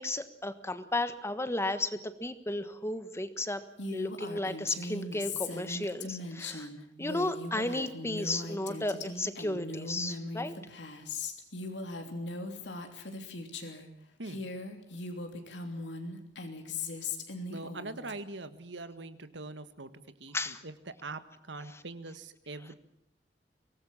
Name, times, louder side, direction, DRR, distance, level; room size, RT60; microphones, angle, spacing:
voice 1, 0.0-3.6 3.9-6.7 7.0-10.5 20.3-20.6, left 2 dB, 15° left, 11 dB, 1.4 m, -34 dB
Female speech woman speaking, 3.8-13.9 14.2-18.1, left 2 dB, 80° left, 3.2 m, -39 dB
voice 2, 17.5-22.7, right 2 dB, 80° right, 11 dB, 1.6 m, -43 dB
24.5 x 19.0 x 7.4 m, 0.78 s
head